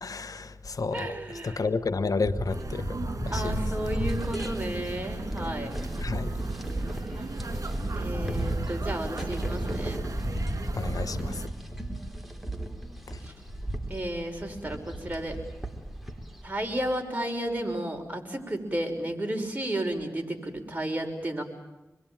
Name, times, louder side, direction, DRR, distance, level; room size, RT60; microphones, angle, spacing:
voice 1, 0.0-1.1 1.4-2.8 3.3-3.5 6.0-6.3 10.7-11.4, left 4 dB, 75° left, 12 dB, 1.2 m, -30 dB
voice 2, 0.9-1.7 3.3-5.7 8.0-10.0 13.2-13.3 13.9-15.4 16.4-21.4, right 1 dB, 25° right, 3 dB, 6.1 m, -32 dB
sound 1, 2.3-16.5, right 1 dB, ahead, 4.4 m, -33 dB
sound 2, 2.5-11.5, right 3 dB, 65° right, 2.9 m, -39 dB
27.0 x 22.5 x 9.1 m, 1.1 s
cardioid pair, 50°, 6 cm